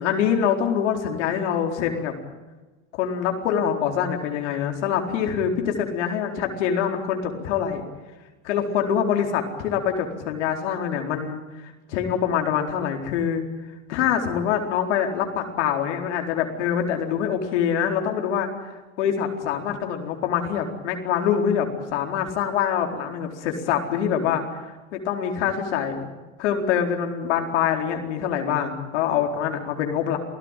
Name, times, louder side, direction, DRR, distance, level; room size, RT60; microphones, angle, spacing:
voice 1, 0.0-2.1 3.0-7.8 8.4-13.4 13.9-18.5 19.0-24.4 24.9-26.1 26.4-30.2, left 8 dB, 55° left, 3 dB, 4.4 m, -25 dB
28.0 x 17.0 x 9.2 m, 1.2 s
supercardioid pair, 175°, 42 cm